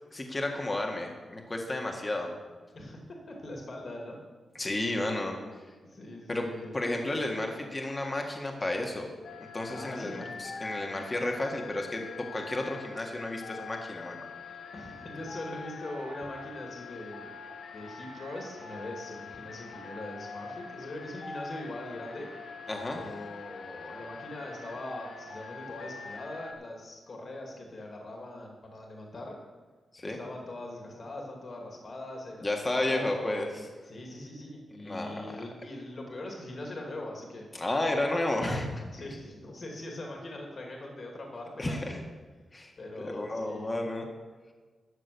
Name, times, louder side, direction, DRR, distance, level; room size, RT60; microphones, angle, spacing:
voice 1, 0.1-2.3 4.6-5.3 6.3-6.5 6.7-9.1 9.5-14.3 22.7-23.0 29.9-30.2 32.4-33.5 34.8-35.4 37.5-38.8 41.6-42.0 42.5-42.7 43.1-44.1, left 1 dB, 25° left, 2 dB, 1.7 m, -32 dB
voice 2, 2.7-4.2 4.9-5.0 5.8-6.7 9.7-10.3 14.7-17.3 17.7-22.3 23.0-29.4 30.0-33.5 33.8-37.5 38.9-42.0 42.8-43.8, left 1 dB, 50° left, 0 dB, 2.4 m, -41 dB
sound 1, 9.2-26.5, left 5 dB, 90° left, 1.4 m, -44 dB
12.5 x 7.1 x 6.9 m, 1.4 s
wide cardioid pair, 115°, 0 cm